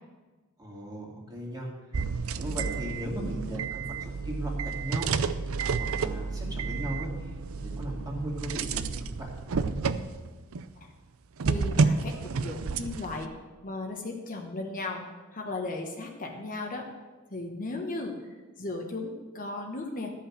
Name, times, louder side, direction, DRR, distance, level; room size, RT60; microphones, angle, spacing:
voice 1, 0.6-1.7 2.3-5.1 5.8-7.3 7.6-9.4, right 1 dB, 20° right, -2 dB, 2.4 m, -37 dB
sound 1, 1.9-10.7 11.4-13.3, right 4 dB, 80° right, 0.5 m, -30 dB
voice 2, 11.5-13.3 13.6-15.0 15.3-16.9 17.3-20.1, left 2 dB, 40° left, 2 dB, 1.1 m, -36 dB
13.0 x 5.7 x 7.3 m, 1.3 s
head